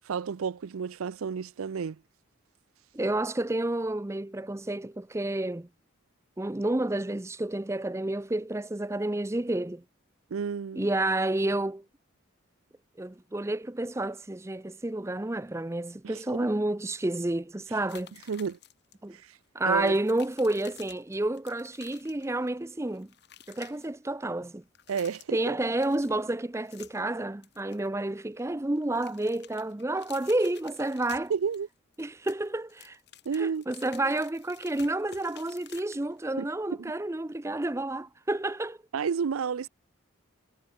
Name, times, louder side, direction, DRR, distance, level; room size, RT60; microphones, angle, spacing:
voice 1, 0.1-2.0 10.3-10.9 16.0-16.5 18.3-18.6 19.1-19.2 19.7-20.0 24.9-25.6 31.3-31.7 33.3-33.7 36.4-36.5 36.8-36.9 38.9-39.7, right 6 dB, 80° right, 0.4 m, -31 dB
voice 2, 2.9-5.7 6.4-9.8 10.8-11.8 13.0-18.1 19.0-19.2 19.5-23.1 23.5-24.6 25.3-31.3 32.0-33.0 33.4-38.8, right 2 dB, 15° right, 0.5 m, -30 dB
sound 1, 17.9-18.9 19.2-19.4 19.8-22.6 22.8-23.9 24.6-25.5 25.8-27.1 27.4-28.5 28.8-31.6 31.9-36.2, left 9 dB, 50° left, 2.2 m, -52 dB
head